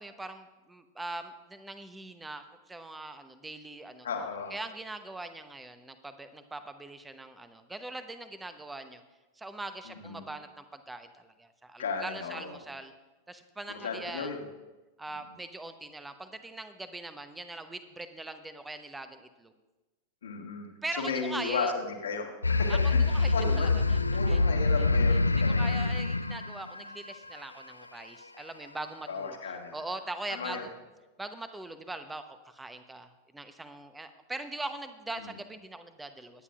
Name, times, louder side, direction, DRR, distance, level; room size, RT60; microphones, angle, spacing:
voice 1, 0.0-4.1 4.5-9.0 9.3-12.9 13.3-14.4 15.0-19.5 20.8-21.7 22.7-24.0 24.3-24.4 25.1-29.4 29.7-30.7 31.2-36.4, right 2 dB, 10° right, 10 dB, 0.9 m, -41 dB
voice 2, 4.0-4.6 9.8-10.2 11.8-12.6 13.7-14.4 20.2-23.0 23.3-23.7 24.1-25.7 29.1-29.8 30.3-30.6 35.2-35.3, left 4 dB, 65° left, 2 dB, 1.7 m, -35 dB
sound 1, 22.4-27.4, left 3 dB, 80° left, 0.3 m, -25 dB
23.0 x 9.9 x 2.5 m, 1.1 s
figure-of-eight pair, 90°, 0 cm